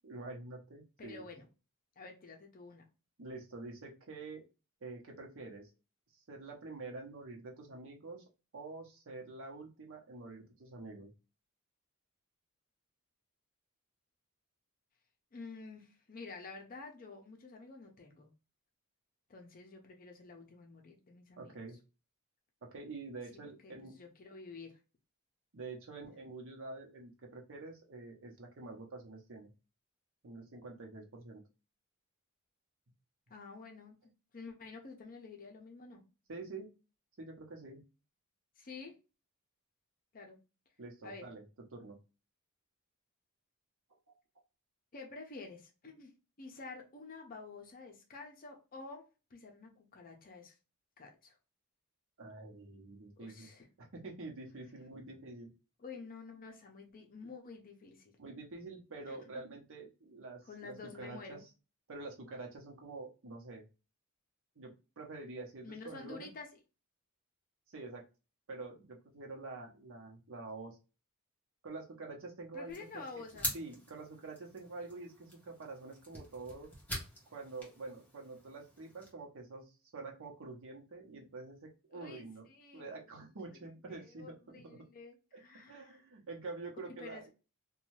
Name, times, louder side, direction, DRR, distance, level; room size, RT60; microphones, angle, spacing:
voice 1, 0.0-1.3 3.2-4.4 4.8-5.7 6.1-8.2 8.5-11.1 21.4-21.8 22.6-23.9 25.5-29.5 30.2-31.4 36.3-36.7 37.2-37.8 40.8-41.4 41.7-42.0 44.1-44.2 52.2-53.5 53.8-55.5 58.2-61.4 61.9-63.7 64.6-66.3 67.7-68.0 68.5-70.8 71.6-73.2 73.5-76.7 77.3-82.5 82.7-84.9 85.3-85.4 85.7-87.3, right 3 dB, 60° right, 1 dB, 0.8 m, -47 dB
voice 2, 1.0-1.5 2.0-2.8 15.3-18.3 19.3-21.5 23.6-24.8 26.0-26.1 33.3-36.0 38.6-38.9 40.1-40.4 41.0-41.3 44.9-46.1 46.4-49.0 49.3-50.6 51.0-51.4 53.2-53.7 55.8-58.1 59.1-59.4 60.4-61.4 65.6-66.6 72.5-73.5 82.0-83.0 83.5-83.6 83.9-86.0 87.0-87.3, left 4 dB, 40° left, 3 dB, 0.6 m, -50 dB
sound 1, 72.7-79.1, equal, 10° left, 0.9 m, -45 dB
2.6 x 2.3 x 3.1 m, 0.31 s
head